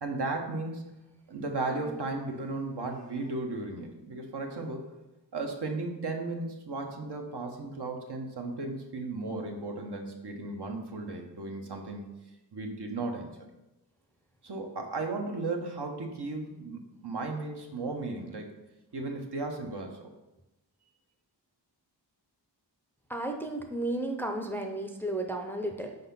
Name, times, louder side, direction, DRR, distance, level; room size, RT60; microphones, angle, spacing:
voice 1, 0.0-0.9 1.3-4.9 5.3-12.1 12.5-13.3 14.4-18.6 18.9-20.1, right 3 dB, 65° right, 2 dB, 0.9 m, -35 dB
voice 2, 1.7-2.0 23.1-26.0, right 1 dB, 5° left, 4 dB, 0.5 m, -33 dB
4.6 x 4.1 x 5.4 m, 0.98 s
wide cardioid pair, 80°, 43 cm